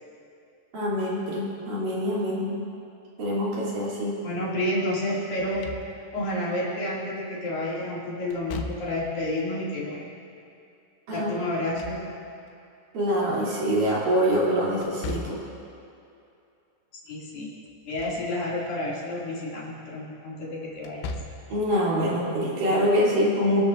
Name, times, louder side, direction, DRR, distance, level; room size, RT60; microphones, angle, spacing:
voice 1, 0.7-2.6 3.2-4.2 11.1-11.3 12.9-15.4 21.5-23.6, equal, 50° right, -7 dB, 4.1 m, -25 dB
voice 2, 4.2-5.7 6.1-10.0 11.1-12.0 17.1-17.5 17.9-21.1, left 1 dB, 55° left, -6 dB, 3.8 m, -30 dB
Slam / Thump thud, 5.4-6.3 8.3-9.2 11.4-12.5 14.8-15.6 17.7-18.3 18.7-18.8 20.8-21.6, left 3 dB, 85° left, 3.2 m, -38 dB
27.0 x 13.0 x 2.5 m, 2.6 s
omnidirectional pair, 5.3 m